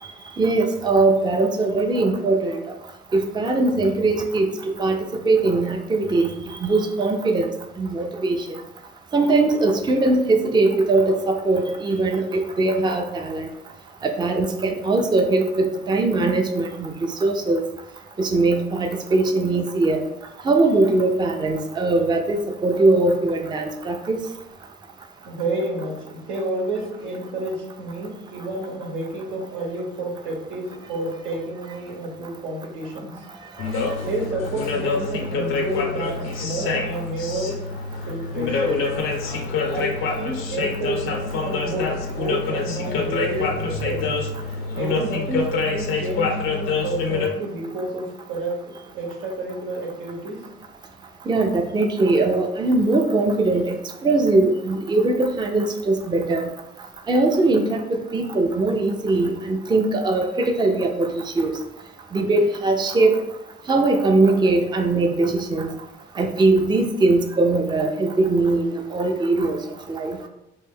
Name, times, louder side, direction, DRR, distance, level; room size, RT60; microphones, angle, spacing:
voice 1, 0.4-2.6 3.1-4.5 4.8-5.0 5.2-7.5 7.8-8.6 9.1-13.5 14.0-16.9 17.2-17.6 18.2-20.0 20.5-24.2 51.3-53.7 54.0-56.4 57.1-61.1 61.4-61.5 62.1-63.2 63.7-65.7 66.2-69.6 69.9-70.2, right 2 dB, 20° right, 3 dB, 0.4 m, -20 dB
voice 2, 25.2-33.2 34.1-37.6 38.1-38.9 39.7-44.1 44.8-50.4, right 1 dB, 85° right, -1 dB, 1.0 m, -30 dB
sound 1, 33.6-47.3, left 4 dB, 90° left, 0.6 m, -26 dB
3.1 x 2.6 x 3.6 m, 0.90 s
cardioid pair, 90°, 20 cm